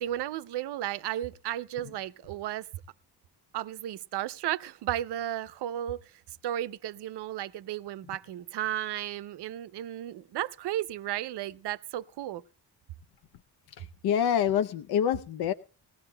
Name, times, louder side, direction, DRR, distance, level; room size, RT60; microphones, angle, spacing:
voice 1, 0.0-2.7 3.5-6.1 6.4-12.4, right 12 dB, 80° right, 0.6 m, -34 dB
voice 2, 13.8-15.5, left 9 dB, 70° left, 0.6 m, -26 dB
20.5 x 16.0 x 2.2 m
cardioid pair, 135°, 39 cm